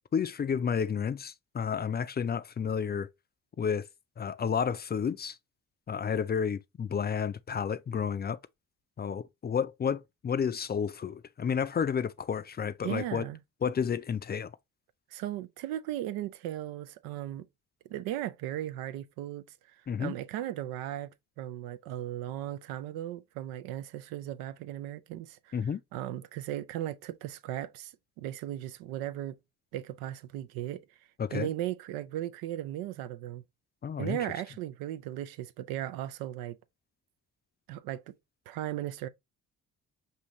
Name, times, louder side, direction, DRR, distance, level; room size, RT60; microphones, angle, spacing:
voice 1, 0.1-3.1 3.6-3.8 4.2-5.4 5.9-8.4 9.0-13.2 13.6-14.5 19.9-20.1 25.5-25.8 31.2-31.5 33.8-34.2, left 7 dB, 30° left, 0.4 m, -31 dB
voice 2, 12.8-13.4 15.1-17.5 17.9-21.1 21.4-25.6 25.9-29.4 29.7-30.8 31.3-33.4 34.0-36.6 37.7-38.1 38.5-39.1, right 13 dB, 90° right, 0.5 m, -37 dB
5.5 x 2.7 x 3.0 m
supercardioid pair, 60°, 35 cm